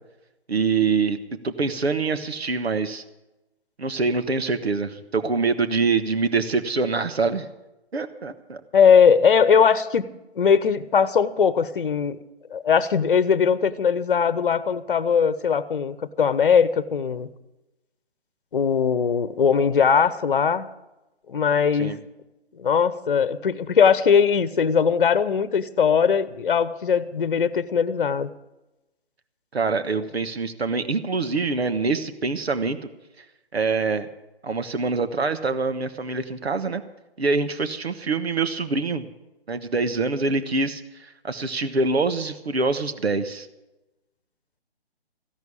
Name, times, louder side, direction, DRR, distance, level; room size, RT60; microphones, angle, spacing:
voice 1, 0.5-1.2 1.4-3.0 3.8-7.5 7.9-8.6 21.8-22.0 29.5-32.8 33.5-34.1 34.4-36.8 37.2-39.1 39.5-43.5, right 4 dB, 70° right, 11 dB, 1.4 m, -25 dB
voice 2, 8.7-10.1 10.3-12.2 12.5-17.3 18.5-20.7 21.3-22.0 22.6-28.3, left 6 dB, 50° left, 16 dB, 1.0 m, -20 dB
15.5 x 11.0 x 6.9 m, 0.98 s
figure-of-eight pair, 140°, 33 cm